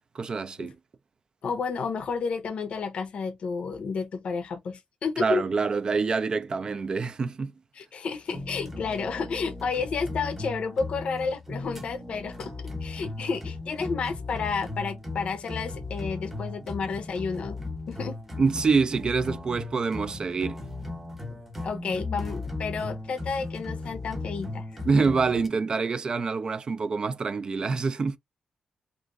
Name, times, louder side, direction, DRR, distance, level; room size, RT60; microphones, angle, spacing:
voice 1, 0.1-0.8 5.2-7.5 18.4-20.6 24.9-28.2, right 4 dB, 40° right, 0.4 m, -26 dB
voice 2, 1.4-5.4 7.7-17.6 17.9-18.2 21.3-21.4 21.6-24.8, left 5 dB, 65° left, 0.5 m, -31 dB
sound 1, 8.3-25.5, left 2 dB, 10° right, 0.8 m, -37 dB
2.9 x 2.5 x 2.4 m
wide cardioid pair, 115°, 2 cm